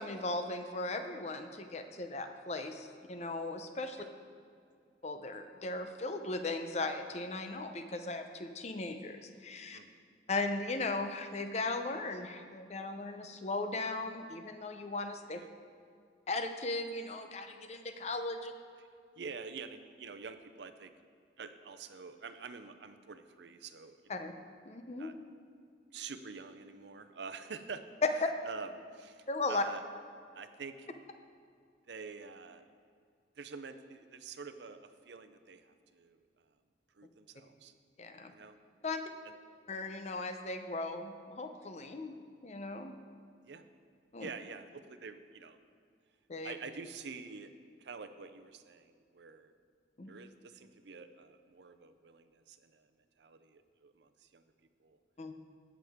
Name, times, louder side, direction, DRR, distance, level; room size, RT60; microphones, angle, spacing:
voice 1, 0.0-4.0 5.0-9.8 10.3-15.4 16.3-18.5 24.1-24.3 24.6-25.1 28.0-28.3 29.3-29.6 38.0-38.3 38.8-39.0 39.7-42.1 42.4-42.9 44.1-44.3 46.3-46.6 50.0-50.1 55.2-55.3, left 2 dB, 35° left, 7 dB, 0.6 m, -37 dB
voice 2, 19.2-20.9 21.4-24.0 24.9-25.1 25.9-27.8 28.5-29.8 30.3-30.9 31.9-32.6 33.4-36.3 36.9-37.7 38.3-38.6 39.2-39.4 43.4-43.6 44.2-45.6 46.4-47.5 47.8-49.5 50.1-52.9 53.2-54.4 54.8-55.0, right 5 dB, 70° right, 9 dB, 0.6 m, -47 dB
17.5 x 6.1 x 3.6 m, 2.2 s
head